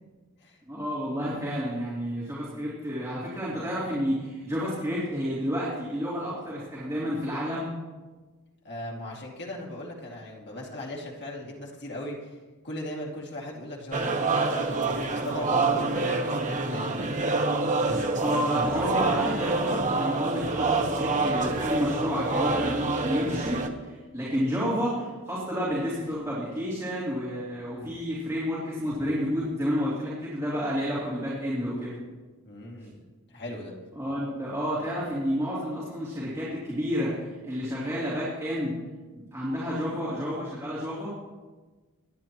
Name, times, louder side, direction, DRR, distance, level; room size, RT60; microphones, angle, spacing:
voice 1, 0.7-7.7 18.2-32.0 33.9-38.8 39.1-41.1, equal, 15° right, -8 dB, 3.1 m, -30 dB
voice 2, 8.6-12.4 12.6-14.5 15.0-17.1 32.4-32.9 33.3-33.7, left 1 dB, 50° left, -2 dB, 2.5 m, -38 dB
sound 1, 13.9-23.7, right 3 dB, 35° right, 1.1 m, -27 dB
26.0 x 10.0 x 3.0 m, 1.3 s
head